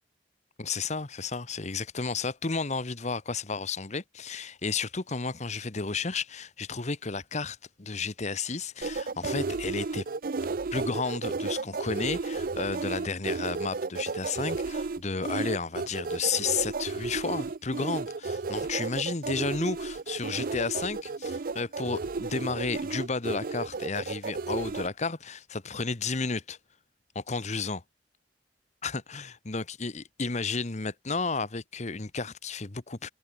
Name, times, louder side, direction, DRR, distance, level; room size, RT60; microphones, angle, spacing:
voice 1, 0.6-10.0 10.7-26.6 27.1-27.8 28.8-33.1, left 4 dB, 40° left, 1.1 m, -32 dB
sound 1, 8.8-24.9, right 4 dB, 55° right, 0.6 m, -33 dB
head